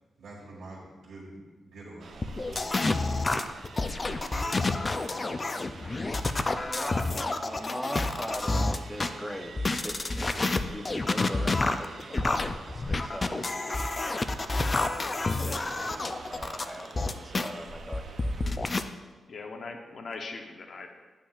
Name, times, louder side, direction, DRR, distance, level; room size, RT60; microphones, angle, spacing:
voice 1, 0.2-2.8, right 2 dB, 90° right, -7 dB, 1.8 m, -46 dB
sound 1, 2.0-18.6, right 4 dB, 60° right, 0.6 m, -47 dB
sound 2, 2.2-9.1 9.6-17.5 17.9-18.8, left 2 dB, 25° left, 0.4 m, -29 dB
voice 2, 6.3-10.3 10.7-12.3 12.7-13.8 14.8-18.7, equal, 5° left, 3 dB, 0.8 m, -41 dB
voice 3, 19.3-20.9, left 3 dB, 50° left, 4 dB, 0.8 m, -40 dB
9.8 x 8.7 x 2.5 m, 1.3 s
wide cardioid pair, 140°, 0 cm